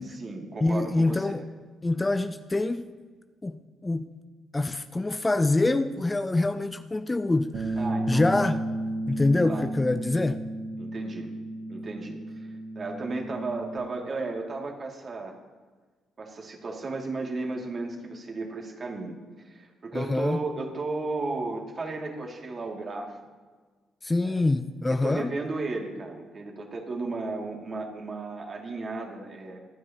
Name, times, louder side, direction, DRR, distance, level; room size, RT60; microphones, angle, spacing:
voice 1, 0.0-1.4 7.8-8.4 9.5-9.7 10.8-11.3 11.7-12.2 12.7-15.3 16.2-19.2 19.4-23.2 24.2-24.4 24.9-29.6, right 3 dB, 45° right, 1 dB, 2.5 m, -34 dB
voice 2, 0.6-1.4 1.8-2.9 3.4-4.1 4.5-7.8 8.1-8.6 9.1-10.4 19.9-20.4 24.0-25.3, left 2 dB, 20° left, 10 dB, 0.6 m, -25 dB
Bass guitar, 7.5-13.8, right 1 dB, 60° right, 1.5 m, -33 dB
25.5 x 9.5 x 3.0 m, 1.4 s
figure-of-eight pair, 40°, 0 cm